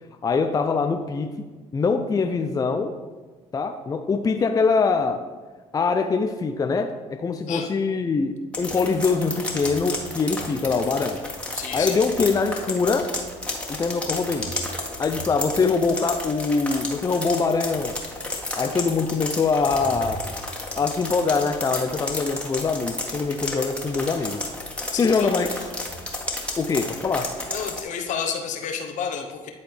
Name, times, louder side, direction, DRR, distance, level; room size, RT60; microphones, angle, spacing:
voice 1, 0.2-1.3 1.7-2.9 3.5-5.2 5.7-11.2 11.7-13.1 13.7-14.5 15.0-18.0 18.6-20.2 20.8-24.4 25.0-25.7 26.6-27.3, left 4 dB, 25° left, 7 dB, 0.5 m, -23 dB
sound 1, 8.5-27.8, left 1 dB, 10° left, 1.6 m, -32 dB
voice 2, 11.5-12.0 24.9-25.4 27.5-29.5, left 7 dB, 60° left, 4 dB, 0.9 m, -30 dB
10.5 x 4.1 x 3.4 m, 1.3 s
hypercardioid pair, 65°, 14 cm